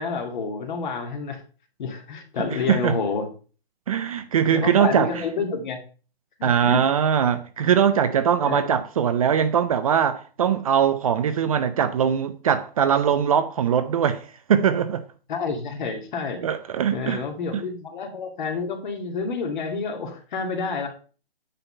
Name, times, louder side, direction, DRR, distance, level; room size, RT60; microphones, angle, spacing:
voice 1, 0.0-1.4 1.8-3.3 4.5-5.8 6.4-6.8 8.4-8.7 15.3-16.4 16.9-20.9, left 5 dB, 50° left, 2.1 m, -29 dB
voice 2, 2.4-2.9 3.9-5.2 6.4-15.0 16.4-17.2 17.5-17.6, right 8 dB, 35° right, 0.5 m, -21 dB
8.9 x 4.2 x 5.3 m
hypercardioid pair, 150°, 30 cm